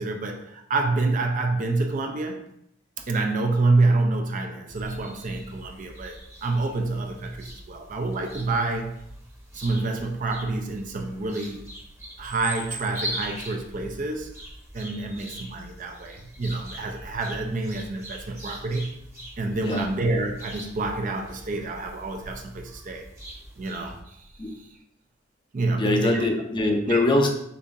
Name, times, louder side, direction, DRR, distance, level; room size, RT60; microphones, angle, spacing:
voice 1, 0.0-2.5 3.1-9.0 9.5-11.6 12.2-14.3 14.7-19.0 19.4-23.0 23.6-24.2 25.5-26.3 26.9-27.0, right 3 dB, 40° right, 3 dB, 0.4 m, -27 dB
sound 1, 4.7-24.0, equal, 15° right, 0.9 m, -41 dB
voice 2, 25.7-27.3, left 2 dB, 25° left, 3 dB, 0.5 m, -22 dB
6.7 x 2.7 x 2.5 m, 0.76 s
head